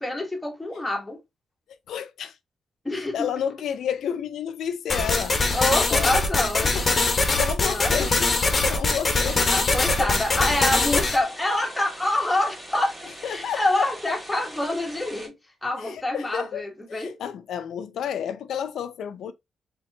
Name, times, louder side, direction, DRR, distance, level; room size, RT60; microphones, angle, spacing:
voice 1, 0.0-1.2 2.8-3.3 5.5-6.8 7.6-8.2 9.5-13.0 13.3-15.3 15.6-17.2, left 1 dB, 10° left, 1.3 m, -26 dB
voice 2, 1.9-2.4 3.1-5.4 5.7-6.2 6.6-6.9 7.3-9.5 9.9-10.1 13.2-14.2 15.8-16.6 16.9-19.3, left 8 dB, 85° left, 0.6 m, -31 dB
sound 1, 4.9-11.2, left 3 dB, 30° left, 1.0 m, -22 dB
sound 2, 9.8-15.3, right 1 dB, 15° right, 1.9 m, -42 dB
4.4 x 3.7 x 2.8 m
wide cardioid pair, 140°, 0 cm